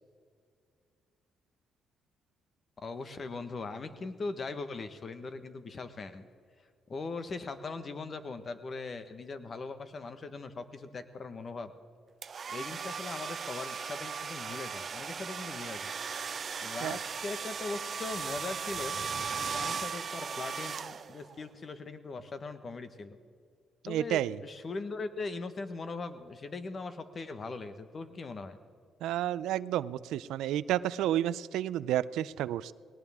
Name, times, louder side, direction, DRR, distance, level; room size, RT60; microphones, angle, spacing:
voice 1, 2.8-6.3 6.9-11.7 12.5-15.9 16.6-19.0 19.3-23.2 23.8-28.6, left 3 dB, 40° left, 10 dB, 1.3 m, -40 dB
sound 1, 12.2-21.4, right 6 dB, 45° right, 0.7 m, -37 dB
voice 2, 23.8-24.4 29.0-32.7, right 12 dB, 90° right, 18 dB, 0.4 m, -31 dB
20.0 x 18.5 x 3.6 m, 2.1 s
cardioid pair, 90°, 0 cm